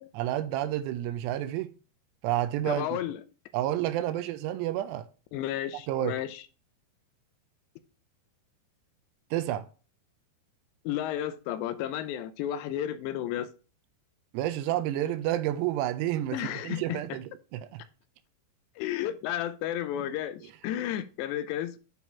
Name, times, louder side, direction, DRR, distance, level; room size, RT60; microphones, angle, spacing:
voice 1, 0.1-1.7 2.2-3.0 3.5-5.1 5.9-6.2 9.3-9.7 14.3-16.4 16.6-17.8, right 13 dB, 85° right, 2.7 m, -30 dB
voice 2, 2.7-3.2 5.3-6.4 10.9-13.5 16.3-17.2 18.8-21.8, left 11 dB, 85° left, 2.8 m, -32 dB
9.3 x 4.0 x 4.4 m
omnidirectional pair, 5.0 m